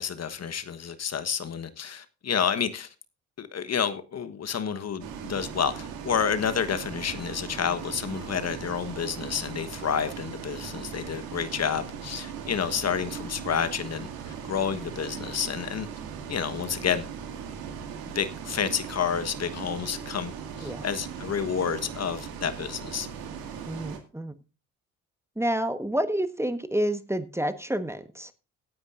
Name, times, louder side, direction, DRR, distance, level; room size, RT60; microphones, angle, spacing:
voice 1, 0.0-2.9 3.4-15.9 16.3-17.0 18.1-23.1, left 7 dB, 45° left, 1.3 m, -30 dB
Bus, 5.0-24.0, right 7 dB, 70° right, 2.2 m, -39 dB
voice 2, 23.7-24.3 25.4-28.3, right 1 dB, 5° right, 1.3 m, -29 dB
17.0 x 9.4 x 2.5 m
hypercardioid pair, 50°, 37 cm